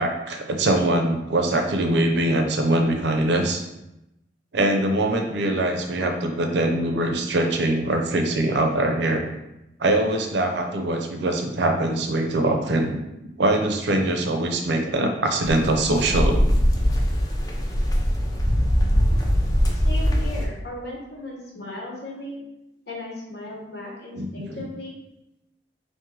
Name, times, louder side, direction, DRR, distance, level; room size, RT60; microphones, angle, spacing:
voice 1, 0.0-3.6 4.5-9.3 9.8-13.0 13.4-16.4 24.2-24.5, right 1 dB, 65° right, 4 dB, 0.5 m, -22 dB
sound 1, 15.4-20.5, equal, 20° left, 0.5 m, -21 dB
voice 2, 19.7-22.4 22.9-25.0, left 1 dB, 55° left, -3 dB, 1.1 m, -36 dB
3.6 x 2.6 x 4.5 m, 0.91 s
head